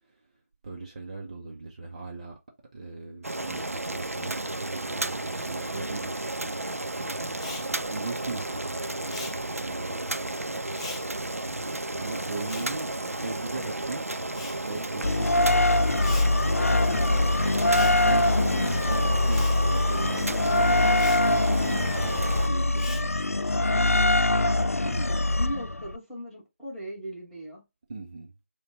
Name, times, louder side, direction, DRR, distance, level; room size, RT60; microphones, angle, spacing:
voice 1, 0.6-2.4 2.7-8.8 9.5-10.2 12.0-14.2 14.6-17.5 18.0-18.6 18.8-23.9 27.9-28.3, right 3 dB, 25° right, 0.6 m, -39 dB
Boiling, 3.2-22.5, right 2 dB, 85° right, 0.5 m, -33 dB
Respiratory sounds, 7.3-13.8 14.0-23.5, left 3 dB, 25° left, 0.6 m, -45 dB
sound 1, 15.0-26.0, left 2 dB, 85° left, 0.4 m, -23 dB
voice 2, 24.8-27.6, right 1 dB, ahead, 1.2 m, -39 dB
5.1 x 2.2 x 3.9 m
figure-of-eight pair, 160°, 8 cm